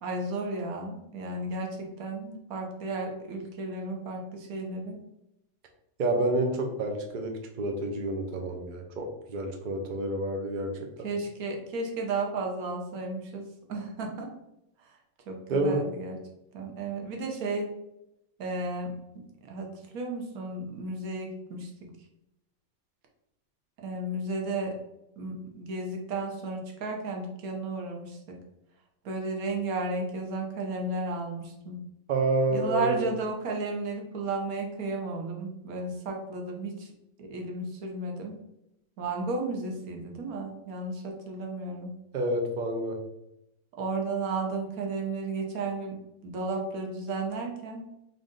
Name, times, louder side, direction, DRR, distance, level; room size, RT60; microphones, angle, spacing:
voice 1, 0.0-5.0 11.0-13.4 13.7-14.3 15.3-16.2 16.5-17.7 18.4-18.9 19.4-19.7 19.9-21.9 23.8-24.7 25.2-28.4 29.0-31.8 32.5-36.9 37.2-38.3 39.0-41.9 43.8-46.0 46.2-47.8, right 2 dB, 75° right, 1 dB, 1.2 m, -33 dB
voice 2, 6.0-10.9 15.5-15.8 32.1-33.0 42.1-43.0, right 2 dB, 55° right, 2 dB, 0.5 m, -28 dB
3.6 x 2.6 x 3.6 m, 0.86 s
omnidirectional pair, 1.6 m